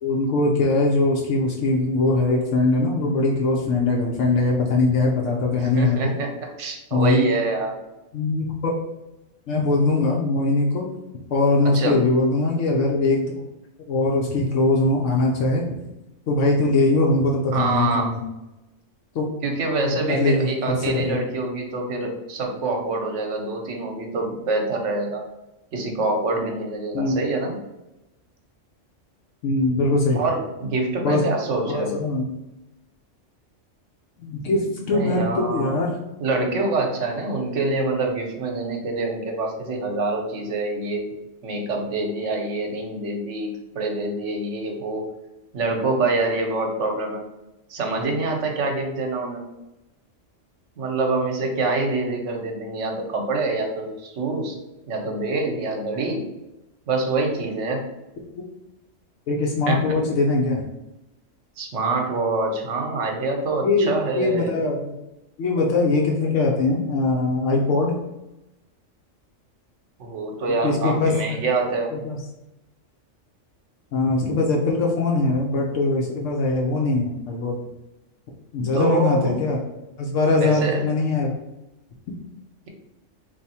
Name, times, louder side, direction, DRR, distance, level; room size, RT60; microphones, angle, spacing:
voice 1, 0.0-6.1 6.9-7.3 8.1-8.8 9.5-10.8 11.3-13.4 13.9-15.6 16.3-18.2 19.1-19.3 19.8-20.5 20.8-21.2 26.9-27.2 29.4-30.2 31.0-31.3 31.7-32.3 34.2-35.9 59.3-60.6 63.6-64.9 65.4-68.0 70.6-71.4 71.9-72.2 73.9-77.6 78.5-79.6 80.0-81.3, left 2 dB, 80° left, -1 dB, 1.0 m, -21 dB
voice 2, 5.5-6.3 6.6-7.7 11.6-12.0 17.5-18.1 19.4-25.2 25.7-27.6 30.1-31.9 34.9-35.7 36.2-41.1 41.4-45.1 45.5-47.2 47.7-49.4 50.8-54.6 54.9-56.3 56.9-57.9 59.7-59.9 61.6-64.6 70.0-71.9 78.7-79.4 80.4-80.8, right 3 dB, 75° right, 2 dB, 1.0 m, -25 dB
3.5 x 2.6 x 4.1 m, 0.94 s
omnidirectional pair, 1.3 m